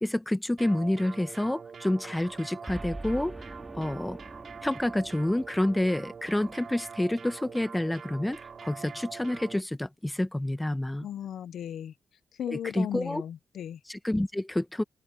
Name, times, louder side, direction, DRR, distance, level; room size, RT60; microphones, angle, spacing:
voice 1, 0.0-4.2 4.6-11.1 12.5-13.2 13.9-14.8, left 1 dB, 10° left, 1.6 m, -29 dB
sound 1, 0.6-9.6, right 6 dB, 60° right, 3.0 m, -44 dB
Boom, 2.7-7.1, right 1 dB, 15° right, 3.8 m, -44 dB
voice 2, 11.0-11.9 12.4-13.8, left 10 dB, 80° left, 0.8 m, -36 dB
open air
cardioid pair, 60°, 0 cm